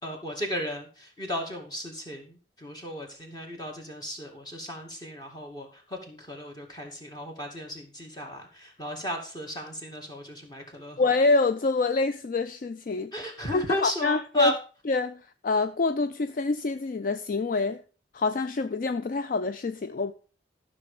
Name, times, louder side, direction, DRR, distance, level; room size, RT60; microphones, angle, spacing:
voice 1, 0.0-11.1 13.1-14.6, equal, 20° left, 2.3 m, -35 dB
voice 2, 11.0-13.1 13.5-14.5 14.9-17.8 18.1-20.1, left 3 dB, 45° left, 0.4 m, -26 dB
13.0 x 6.1 x 5.0 m
head